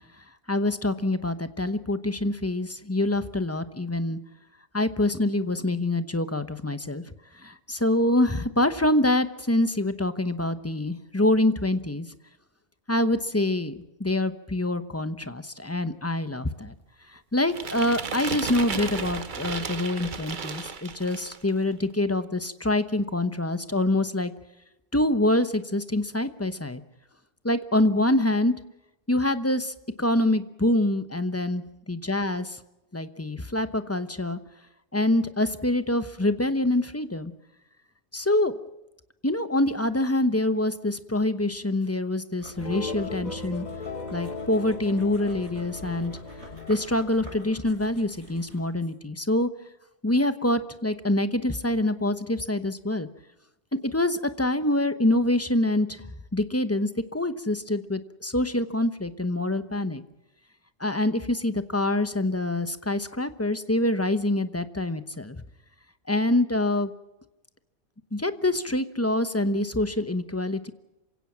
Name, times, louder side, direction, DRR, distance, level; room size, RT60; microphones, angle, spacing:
voice 1, 0.5-4.2 4.7-7.0 7.3-12.1 12.9-16.7 17.1-24.3 24.9-26.8 27.4-28.5 29.1-32.6 32.9-34.4 34.9-37.3 38.1-38.6 39.2-43.6 44.1-46.2 46.7-49.5 50.0-53.1 53.7-56.0 56.3-60.0 60.8-65.4 66.1-66.9 68.1-70.7, left 1 dB, 15° left, 11 dB, 1.0 m, -25 dB
sound 1, 17.5-21.5, right 5 dB, 45° right, 1.1 m, -34 dB
sound 2, 42.4-48.7, right 1 dB, 85° right, 7.3 m, -49 dB
sound 3, 42.6-47.6, left 4 dB, 40° left, 1.3 m, -37 dB
27.0 x 17.0 x 7.5 m, 0.96 s
omnidirectional pair, 1.2 m